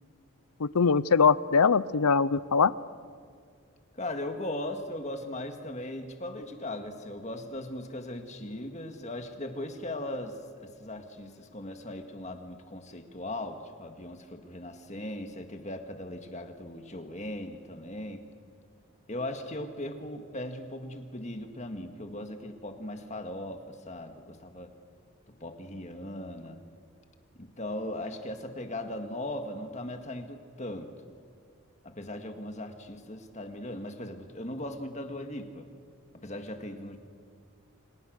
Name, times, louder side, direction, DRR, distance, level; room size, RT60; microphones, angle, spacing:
voice 1, 0.6-2.7, left 5 dB, 90° left, 19 dB, 0.7 m, -22 dB
voice 2, 3.9-18.2 19.1-24.7 25.4-26.6 27.4-30.9 31.8-35.7 36.1-37.0, left 1 dB, 30° left, 6 dB, 1.9 m, -38 dB
30.0 x 25.5 x 6.6 m, 2.1 s
head